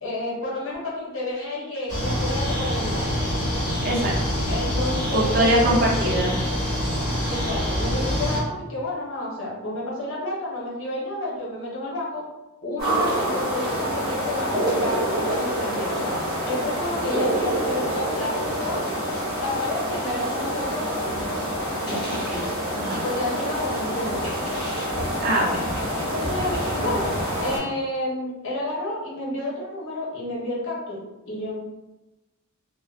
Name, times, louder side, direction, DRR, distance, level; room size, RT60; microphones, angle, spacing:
voice 1, 0.0-3.1 4.5-6.2 7.3-12.2 12.6-16.1 16.5-19.0 19.4-21.2 21.8-22.0 23.0-24.4 25.9-27.1 27.4-31.6, left 1 dB, 60° left, -5 dB, 0.9 m, -30 dB
sound 1, 1.9-8.4, equal, 40° left, 1.2 m, -25 dB
voice 2, 3.8-4.4 5.1-6.4 22.1-23.0 25.2-25.7, right 1 dB, 45° right, -3 dB, 0.6 m, -23 dB
sound 2, 12.8-27.6, equal, ahead, 1.1 m, -27 dB
2.5 x 2.0 x 2.4 m, 1.0 s
head